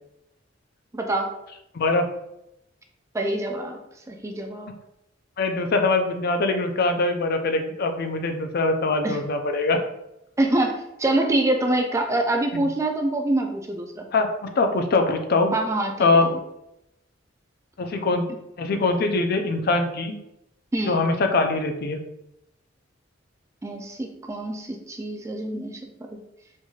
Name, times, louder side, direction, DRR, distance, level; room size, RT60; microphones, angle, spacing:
voice 1, 0.9-1.3 3.1-3.8 4.1-4.7 9.0-9.2 10.4-14.1 15.5-16.4 20.7-21.0 23.6-25.8 26.1-26.2, right 1 dB, 15° right, 4 dB, 0.3 m, -25 dB
voice 2, 1.7-2.1 5.4-9.8 12.5-12.7 14.1-15.5 16.0-16.3 17.8-18.3 18.6-20.2 20.8-22.0, left 3 dB, 55° left, 5 dB, 0.4 m, -23 dB
4.4 x 2.9 x 2.3 m, 0.84 s
head